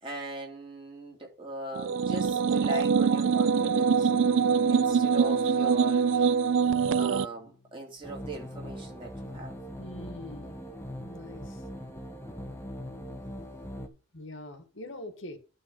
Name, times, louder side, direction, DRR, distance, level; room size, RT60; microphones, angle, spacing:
voice 1, 0.0-4.1 4.7-6.3 6.9-9.5, equal, 25° right, 2.8 m, -40 dB
sound 1, 1.8-7.3, right 6 dB, 60° right, 0.3 m, -24 dB
Bowed string instrument, 2.9-8.1, left 3 dB, 35° left, 1.0 m, -42 dB
sound 2, 8.0-13.9, equal, 10° left, 1.1 m, -41 dB
voice 2, 9.8-11.6 14.1-15.4, left 1 dB, 60° left, 1.8 m, -44 dB
11.5 x 4.1 x 5.5 m
head